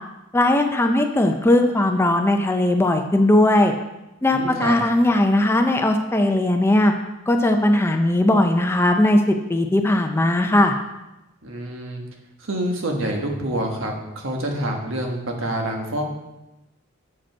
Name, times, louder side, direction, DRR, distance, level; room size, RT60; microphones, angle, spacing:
voice 1, 0.3-3.7 4.2-6.9 7.3-10.7, left 1 dB, 10° left, 5 dB, 0.5 m, -18 dB
voice 2, 4.3-4.8 11.4-12.0 12.4-16.0, right 1 dB, 70° right, 1 dB, 1.2 m, -27 dB
7.4 x 5.1 x 4.5 m, 0.96 s
head